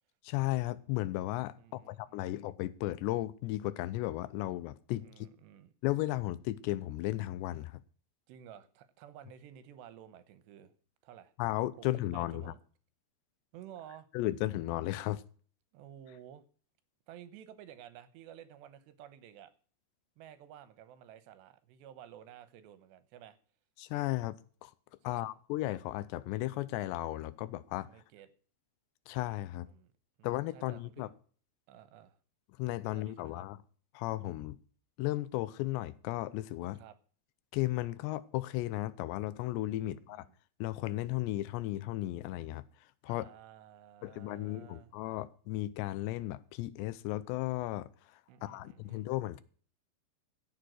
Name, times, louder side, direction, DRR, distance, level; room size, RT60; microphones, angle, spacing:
voice 1, 0.2-5.3 5.8-7.8 11.4-12.5 14.1-15.2 23.8-24.7 25.0-27.9 29.1-29.7 30.2-31.1 32.6-33.6 33.9-34.6 35.0-36.8 37.5-40.3 40.6-42.6 43.0-43.3 44.0-49.4, left 16 dB, 90° left, 3.0 m, -35 dB
voice 2, 1.6-2.4 5.0-5.7 8.3-10.7 11.0-11.3 11.8-12.6 13.5-14.1 15.7-16.4 17.1-19.5 20.2-23.4 25.1-25.3 27.9-28.3 29.6-29.9 30.2-31.1 31.7-32.2 32.8-33.5 36.8-37.0 39.8-40.3 43.1-44.9 48.3-49.1, right 10 dB, 85° right, 3.3 m, -53 dB
16.0 x 7.2 x 6.3 m
omnidirectional pair, 4.9 m